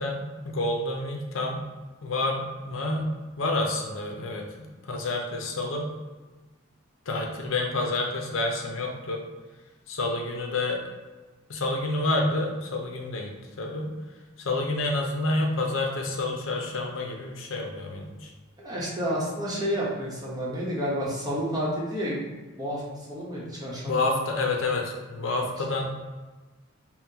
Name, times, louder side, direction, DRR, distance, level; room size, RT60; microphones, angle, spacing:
voice 1, 0.0-1.6 2.0-5.9 7.1-9.2 9.9-10.8 11.5-13.9 14.4-18.3 23.3-23.4 23.9-25.9, left 2 dB, 75° left, 1 dB, 0.6 m, -29 dB
voice 2, 18.6-22.3 22.6-24.1, equal, 20° right, -6 dB, 1.0 m, -30 dB
5.6 x 2.2 x 2.8 m, 1.3 s
head